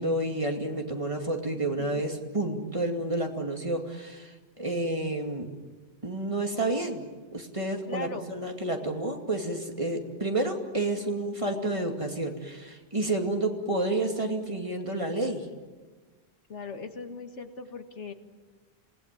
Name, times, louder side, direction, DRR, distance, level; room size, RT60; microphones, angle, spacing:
voice 1, 0.0-5.5 6.0-7.0 7.3-15.5, right 2 dB, 30° right, 3 dB, 2.6 m, -30 dB
voice 2, 7.9-8.2 16.5-18.1, left 4 dB, 90° left, 6 dB, 2.1 m, -39 dB
27.5 x 19.0 x 9.3 m, 1.3 s
omnidirectional pair, 1.2 m